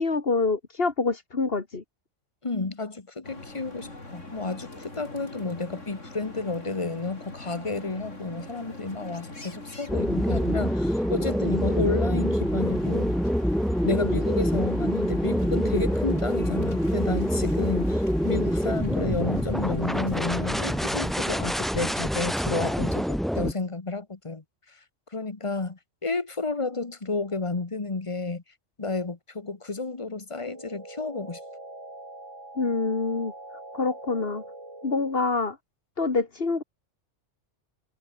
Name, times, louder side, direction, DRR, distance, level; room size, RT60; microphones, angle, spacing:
voice 1, 0.0-1.8 32.6-33.3 33.7-34.4 34.8-35.6 36.0-36.6, left 3 dB, 50° left, 2.4 m, -26 dB
voice 2, 2.4-13.1 13.8-24.8 25.1-28.4 28.8-31.4, left 3 dB, 25° left, 1.4 m, -31 dB
sound 1, 3.2-21.1, left 2 dB, 85° left, 5.3 m, -42 dB
sound 2, 9.9-23.5, equal, ahead, 3.2 m, -26 dB
sound 3, 30.3-35.3, right 2 dB, 75° right, 7.0 m, -44 dB
omnidirectional pair, 1.3 m